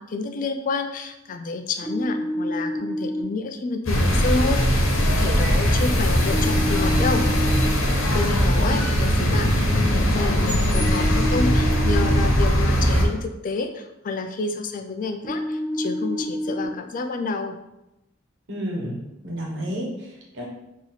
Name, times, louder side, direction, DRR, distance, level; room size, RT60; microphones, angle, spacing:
voice 1, 0.0-7.3 8.1-17.6, left 3 dB, 40° left, 6 dB, 0.4 m, -29 dB
sound 1, 1.8-3.2 6.3-7.7 10.8-12.2 15.2-16.6, equal, 5° left, 0.9 m, -28 dB
sound 2, 3.9-13.0, equal, 85° left, 1.0 m, -20 dB
voice 2, 8.3-8.7 18.5-20.4, equal, 65° right, -2 dB, 1.2 m, -31 dB
4.3 x 2.8 x 4.0 m, 0.92 s
head